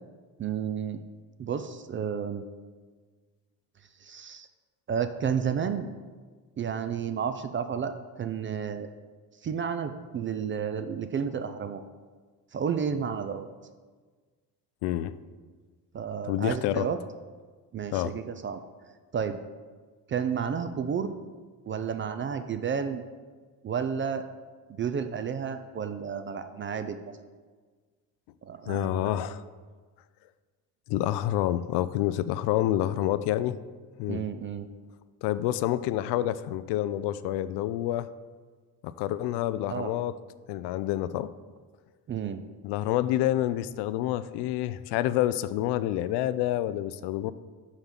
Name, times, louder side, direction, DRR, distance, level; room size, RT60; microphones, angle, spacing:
voice 1, 0.4-1.0 1.4-2.4 4.0-4.5 4.9-5.9 6.6-8.9 9.4-11.8 12.5-13.5 15.9-17.0 17.7-18.6 19.1-19.4 20.1-21.2 21.7-23.0 23.6-24.2 24.8-27.1 28.4-29.2 34.1-34.7 39.7-39.9 42.1-42.4, right 7 dB, 25° right, 9 dB, 0.4 m, -31 dB
voice 2, 14.8-15.1 16.3-16.9 17.9-18.2 28.7-29.4 30.9-33.6 34.0-34.2 35.2-38.1 38.8-40.1 40.5-41.3 42.6-47.3, left 13 dB, 55° left, 15 dB, 0.5 m, -28 dB
5.8 x 5.6 x 5.7 m, 1.4 s
hypercardioid pair, 55°, 49 cm